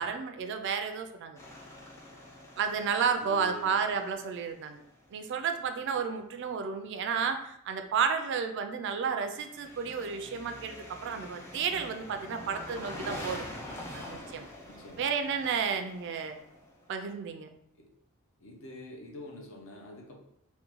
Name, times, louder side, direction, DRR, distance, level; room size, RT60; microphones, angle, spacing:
voice 1, 0.0-1.4 2.6-4.8 5.1-13.4 13.9-14.5 15.0-16.4 16.9-17.5, right 6 dB, 55° right, 7 dB, 0.3 m, -32 dB
sound 1, 1.4-5.2 9.4-17.0, left 1 dB, 10° left, 0.4 m, -45 dB
voice 2, 3.2-3.8 12.3-12.6 14.7-15.1 17.8-17.9 18.4-20.2, equal, 65° left, 1 dB, 0.6 m, -46 dB
3.6 x 2.2 x 3.0 m, 0.76 s
head